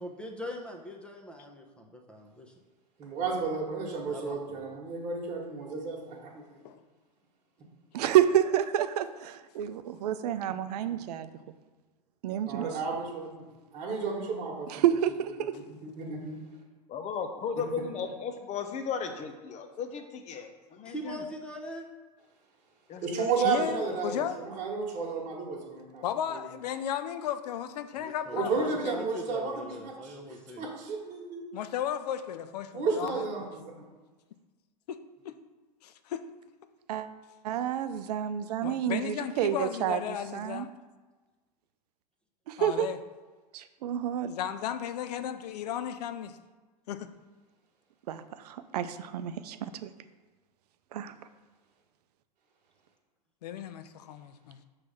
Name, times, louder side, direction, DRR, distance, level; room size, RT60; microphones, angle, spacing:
voice 1, 0.0-2.5 4.1-4.8 20.8-21.9 27.9-30.7, equal, 5° left, 2 dB, 0.9 m, -42 dB
voice 2, 3.0-6.6 12.5-13.4 13.7-14.7 15.8-16.4 17.6-17.7 23.0-26.0 26.3-26.4 28.3-31.4 32.7-33.7, right 5 dB, 35° right, -3 dB, 1.6 m, -32 dB
voice 3, 7.9-11.3 12.2-12.7 14.7-15.6 36.9-37.1 37.4-40.0 40.3-40.7 42.5-42.9 43.5-44.3 48.1-49.9 50.9-51.1, right 10 dB, 70° right, 11 dB, 0.5 m, -29 dB
voice 4, 16.9-21.2 22.9-23.8, left 6 dB, 35° left, 7 dB, 0.8 m, -36 dB
voice 5, 23.4-24.4 26.0-29.0 31.5-33.2 34.9-35.0 35.2-35.4 35.8-36.2 38.6-40.7 42.6-43.0 44.2-46.4 46.9-47.1 53.4-54.6, left 9 dB, 70° left, 10 dB, 0.5 m, -35 dB
6.0 x 3.3 x 5.6 m, 1.3 s
hypercardioid pair, 100°, 21 cm